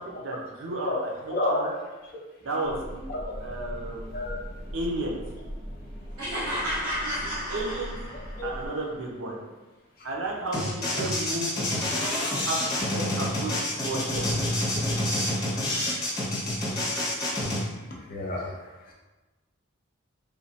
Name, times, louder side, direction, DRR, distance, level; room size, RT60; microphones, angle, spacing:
voice 1, 0.1-1.7 2.4-3.0 3.4-4.1 4.7-5.2 7.2-8.0 8.4-9.4 10.0-11.8 12.4-14.3, right 2 dB, 60° right, -2 dB, 0.6 m, -33 dB
voice 2, 1.3-1.7 3.1-3.2 4.1-4.4 8.4-8.5 18.1-18.6, left 1 dB, 40° left, -2 dB, 0.5 m, -28 dB
sound 1, 2.6-8.7, equal, 20° right, 0.6 m, -40 dB
sound 2, 6.2-8.5, equal, 85° right, 1.1 m, -32 dB
sound 3, 10.5-17.6, left 1 dB, 15° left, 0.8 m, -27 dB
3.2 x 2.3 x 2.8 m, 1.2 s
head